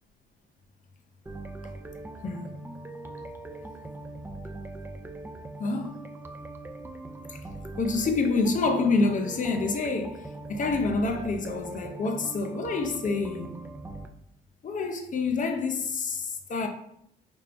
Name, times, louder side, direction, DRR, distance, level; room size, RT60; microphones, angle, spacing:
sound 1, 1.3-14.1, right 2 dB, 10° right, 0.4 m, -41 dB
voice 1, 2.2-2.5 5.6-6.0 7.3-7.4 7.8-13.7 14.6-16.7, left 3 dB, 40° left, 0.7 m, -27 dB
5.2 x 2.8 x 3.4 m
cardioid pair, 90°, 20 cm